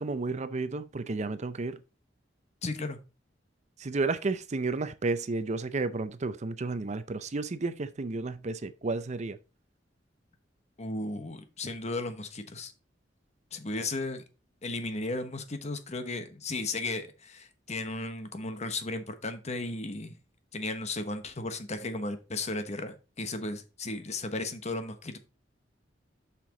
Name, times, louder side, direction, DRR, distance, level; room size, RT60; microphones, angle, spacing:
voice 1, 0.0-1.8 3.8-9.4, right 3 dB, 40° right, 0.5 m, -32 dB
voice 2, 2.6-3.0 10.8-12.7 13.5-14.2 14.6-20.1 20.5-25.2, left 2 dB, 40° left, 1.1 m, -35 dB
7.5 x 5.9 x 3.8 m
head